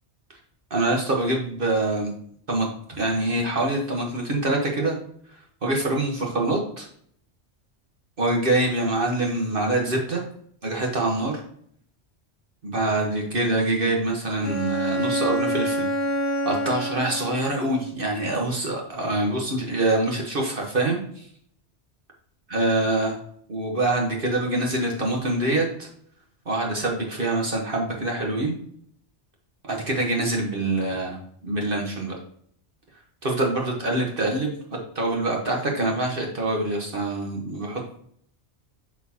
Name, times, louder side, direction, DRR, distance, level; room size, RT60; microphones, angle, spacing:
voice 1, 0.7-2.1 2.5-2.7 3.0-5.0 5.6-6.9 8.2-10.2 10.6-11.4 12.6-15.9 16.4-21.3 22.5-23.2 23.5-25.9 26.5-28.5 29.6-32.1 33.2-34.5 34.9-38.0, right 2 dB, 50° right, 0 dB, 1.4 m, -25 dB
Bowed string instrument, 14.4-17.9, equal, 45° left, 0.9 m, -27 dB
11.5 x 4.3 x 2.8 m, 0.64 s
omnidirectional pair, 1.2 m